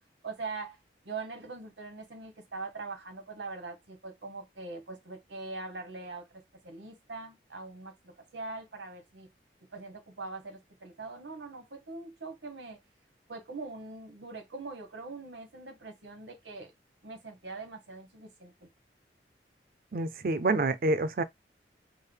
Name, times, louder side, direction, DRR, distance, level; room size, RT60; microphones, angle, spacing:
voice 1, 0.2-0.8 1.0-9.3 9.7-12.8 13.3-16.7 17.0-18.7, right 3 dB, 90° right, 1.2 m, -42 dB
voice 2, 19.9-21.2, right 2 dB, 50° right, 0.4 m, -27 dB
4.6 x 2.1 x 3.2 m
head